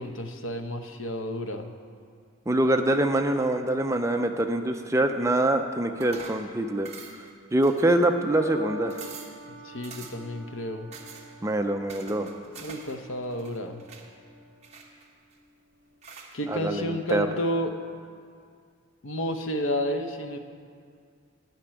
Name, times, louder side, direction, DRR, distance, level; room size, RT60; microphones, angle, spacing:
voice 1, 0.0-1.7 9.6-10.9 12.6-13.8 16.3-17.7 19.0-20.4, equal, 65° left, 7 dB, 0.8 m, -31 dB
voice 2, 2.5-6.9 7.5-9.0 11.4-12.3 16.5-17.3, right 1 dB, 15° right, 6 dB, 0.4 m, -24 dB
sound 1, 6.0-6.5 6.9-7.3 7.6-8.2 8.6-8.7 8.9-9.4 9.8-10.3 10.9-11.3 11.9-13.0 13.2-14.1 14.6-15.3 16.0-16.4, right 4 dB, 30° right, 1.2 m, -45 dB
sound 2, 8.4-14.9 15.7-16.1, equal, 10° left, 2.6 m, -45 dB
12.0 x 6.0 x 8.8 m, 2.2 s
head